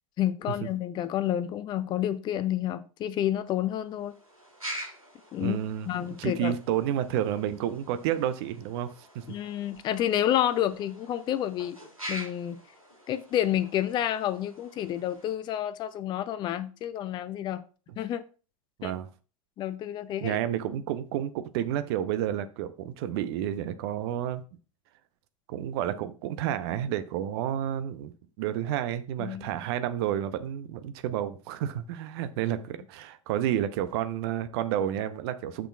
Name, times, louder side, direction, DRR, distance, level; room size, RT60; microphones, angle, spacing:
voice 1, 0.2-4.1 5.3-5.6 5.9-6.5 9.3-11.8 12.1-12.6 13.1-17.6 18.0-18.2 18.8-19.0 19.6-20.4 29.2-29.5, left 11 dB, 25° left, 0.5 m, -29 dB
sound 1, 3.8-15.3, equal, 90° right, 2.7 m, -45 dB
voice 2, 5.4-8.9 9.1-9.2 17.9-18.0 18.8-19.1 20.2-24.4 25.5-28.1 28.4-35.7, right 11 dB, 50° right, 0.7 m, -30 dB
9.9 x 6.2 x 2.3 m
figure-of-eight pair, 85°, 17 cm